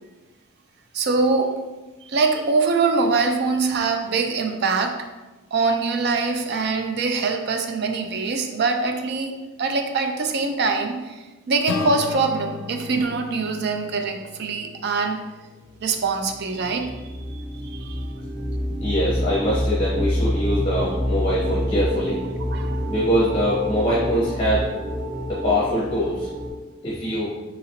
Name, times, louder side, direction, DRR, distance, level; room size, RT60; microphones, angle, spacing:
voice 1, 0.9-1.5 2.0-5.0 5.5-15.2 15.8-18.0 22.5-22.8, right 4 dB, 55° right, 5 dB, 0.4 m, -23 dB
Acoustic guitar / Strum, 11.7-16.4, left 5 dB, 85° left, 0.3 m, -36 dB
sound 1, 15.9-26.5, equal, 75° right, 1.3 m, -27 dB
voice 2, 18.8-22.2 22.9-24.7 25.3-26.3 26.8-27.3, equal, 30° left, -6 dB, 0.7 m, -23 dB
3.9 x 2.9 x 2.8 m, 1.2 s
head